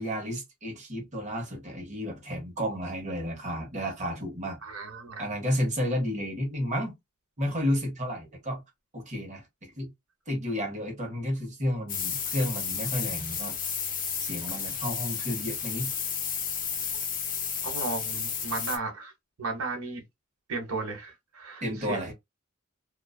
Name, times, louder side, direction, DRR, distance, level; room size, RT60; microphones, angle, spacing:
voice 1, 0.0-4.6 5.2-6.9 7.4-8.6 8.9-9.9 10.3-13.6 14.2-15.9 21.6-22.1, equal, 35° right, 0.9 m, -32 dB
voice 2, 4.6-5.2 16.9-17.0 17.6-19.1 19.4-20.0 20.5-22.1, right 3 dB, 85° right, 0.8 m, -35 dB
sound 1, 11.9-18.8, left 7 dB, 40° left, 0.6 m, -32 dB
2.4 x 2.3 x 2.3 m
head